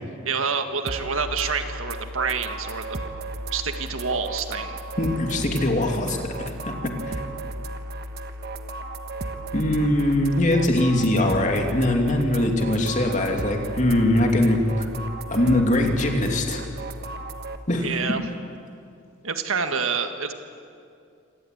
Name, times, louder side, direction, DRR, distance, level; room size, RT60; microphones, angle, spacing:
voice 1, 0.3-3.0 3.5-4.8 17.8-18.3 19.2-20.3, right 5 dB, 80° right, 7 dB, 1.8 m, -27 dB
sound 1, 0.9-17.6, right 1 dB, 50° right, 1.2 m, -34 dB
voice 2, 5.0-7.2 9.5-14.9 15.3-16.6 17.7-17.9, left 1 dB, 35° left, 3 dB, 2.7 m, -22 dB
26.0 x 18.5 x 9.3 m, 2.4 s
head